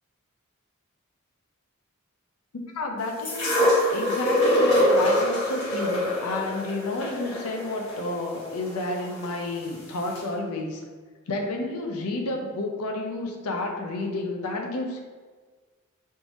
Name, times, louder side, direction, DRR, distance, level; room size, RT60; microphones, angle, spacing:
voice 1, 2.7-10.8 11.3-15.0, left 2 dB, 90° left, 3 dB, 0.6 m, -30 dB
sound 1, 3.2-9.3 10.2-10.3, equal, 55° left, 1.2 m, -24 dB
3.6 x 2.6 x 2.9 m, 1.5 s
head